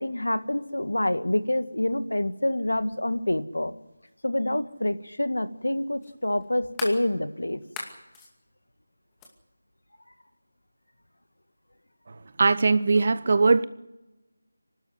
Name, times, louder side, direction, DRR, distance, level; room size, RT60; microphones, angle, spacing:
voice 1, 0.0-3.7 4.2-7.6, left 1 dB, 80° left, 1.7 m, -27 dB
sound 1, 4.1-4.2 6.0-7.0 7.6-8.3 9.2-9.3, left 3 dB, 10° left, 2.4 m, -38 dB
voice 2, 12.4-13.6, right 3 dB, 45° right, 0.9 m, -20 dB
25.0 x 12.5 x 9.6 m
figure-of-eight pair, 165°, 0 cm